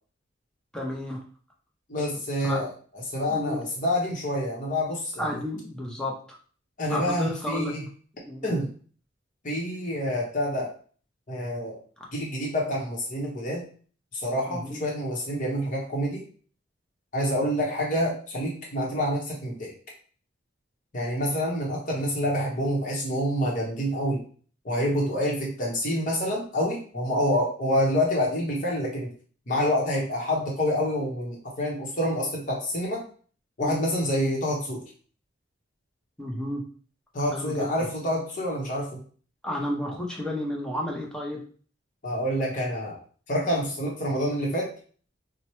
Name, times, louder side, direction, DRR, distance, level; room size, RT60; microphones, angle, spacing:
voice 1, 0.7-1.2 2.4-2.7 3.3-3.6 5.2-6.1 6.9-7.7 8.2-8.5 14.5-14.8 33.6-33.8 36.2-36.6 37.3-37.7 39.4-41.4, left 1 dB, 5° left, -1 dB, 0.6 m, -31 dB
voice 2, 1.9-2.7 3.1-5.4 6.8-7.8 8.4-8.7 9.4-10.7 11.3-11.8 12.1-13.6 14.1-16.2 17.1-19.7 20.9-24.2 24.6-29.1 29.5-33.0 33.6-34.8 37.1-39.0 42.0-43.0 43.3-44.7, equal, 45° left, -3 dB, 0.8 m, -27 dB
4.4 x 2.1 x 3.0 m, 0.43 s
head